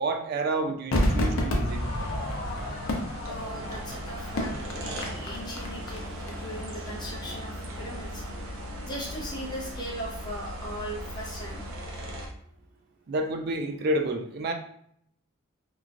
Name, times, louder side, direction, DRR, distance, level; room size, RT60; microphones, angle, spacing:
voice 1, 0.0-1.8 13.1-14.5, right 2 dB, 45° right, 5 dB, 0.3 m, -29 dB
Crowd / Fireworks, 0.9-6.3 6.6-6.7, left 1 dB, 65° left, 0.5 m, -30 dB
sound 1, 1.7-12.3, equal, 75° right, 0.7 m, -38 dB
voice 2, 3.3-8.2 8.8-11.6, equal, 20° left, -4 dB, 0.7 m, -39 dB
3.0 x 2.3 x 2.4 m, 0.68 s
head